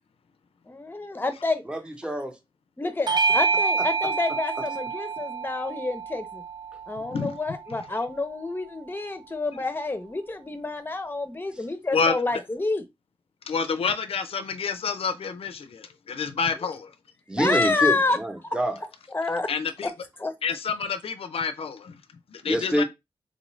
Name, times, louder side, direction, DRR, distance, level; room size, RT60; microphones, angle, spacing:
voice 1, 0.7-1.6 2.8-6.4 6.9-12.8 17.4-18.2 19.1-19.5 19.8-19.9 20.2-20.3, left 3 dB, 20° left, 0.6 m, -28 dB
voice 2, 1.7-2.4 3.8-3.9 17.3-18.8 22.4-22.8, right 1 dB, 10° right, 0.8 m, -26 dB
Bell / Doorbell, 3.1-7.9, right 4 dB, 45° right, 0.4 m, -28 dB
voice 3, 13.5-16.9 19.5-19.9 20.4-22.0 22.3-22.8, left 5 dB, 80° left, 0.4 m, -28 dB
3.7 x 2.5 x 3.1 m
wide cardioid pair, 95°, 10 cm